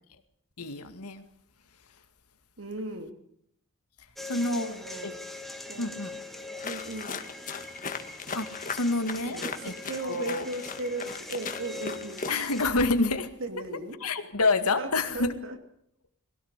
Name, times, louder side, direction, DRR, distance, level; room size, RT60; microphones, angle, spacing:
voice 1, 0.6-1.2 4.3-4.7 5.0-5.1 5.8-6.2 8.3-9.7 10.0-10.5 12.3-13.3 14.0-15.3, left 3 dB, 85° left, 8 dB, 2.1 m, -28 dB
voice 2, 2.6-3.1 4.3-5.1 5.7-6.0 6.6-7.2 9.3-12.2 13.4-14.0 14.8-15.6, right 2 dB, 60° right, 7 dB, 2.7 m, -37 dB
sound 1, 4.2-12.7, left 2 dB, ahead, 2.0 m, -42 dB
sound 2, 6.6-12.7, left 5 dB, 35° left, 1.8 m, -38 dB
22.5 x 17.0 x 8.3 m, 0.70 s
head